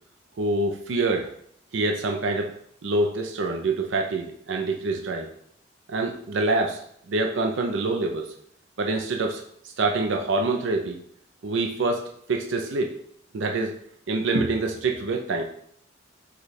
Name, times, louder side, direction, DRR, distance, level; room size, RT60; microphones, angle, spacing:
voice 1, 0.4-1.3 1.7-2.5 2.8-5.3 5.9-6.8 7.1-8.3 8.8-9.4 9.8-11.0 11.4-12.9 13.3-13.7 14.1-15.4, right 2 dB, 75° right, 2 dB, 0.5 m, -25 dB
5.0 x 2.3 x 4.1 m, 0.66 s
head